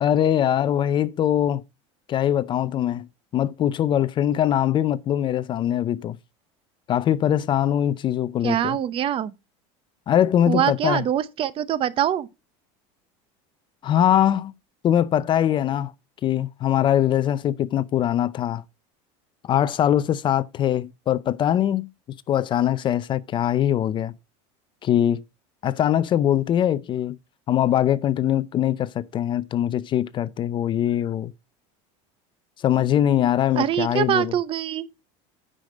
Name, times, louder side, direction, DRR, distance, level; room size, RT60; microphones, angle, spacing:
voice 1, 0.0-1.6 2.1-3.1 3.3-6.2 6.9-8.8 10.1-11.0 13.8-14.5 14.8-15.9 16.2-18.6 19.5-21.9 22.3-24.1 24.8-25.2 25.6-27.2 27.5-31.3 32.6-34.3, left 10 dB, 30° left, 0.5 m, -22 dB
voice 2, 8.4-9.3 10.5-12.3 33.5-34.9, right 10 dB, 35° right, 0.8 m, -24 dB
9.9 x 6.6 x 5.1 m
supercardioid pair, 140°, 16 cm